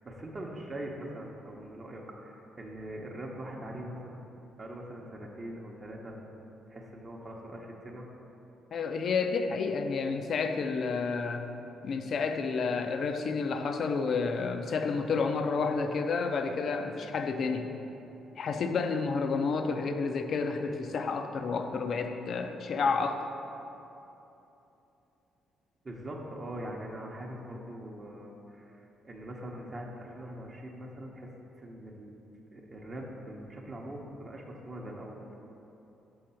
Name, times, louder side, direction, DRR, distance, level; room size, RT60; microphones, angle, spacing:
voice 1, 0.0-4.2 4.6-6.2 6.7-8.1 25.8-31.3 31.6-32.2 32.5-35.2, right 1 dB, 30° right, -1 dB, 0.8 m, -42 dB
voice 2, 8.7-11.5 11.8-17.7 18.4-23.2, left 4 dB, 60° left, 6 dB, 0.5 m, -30 dB
6.4 x 3.8 x 5.6 m, 3.0 s
cardioid pair, 90°, 0 cm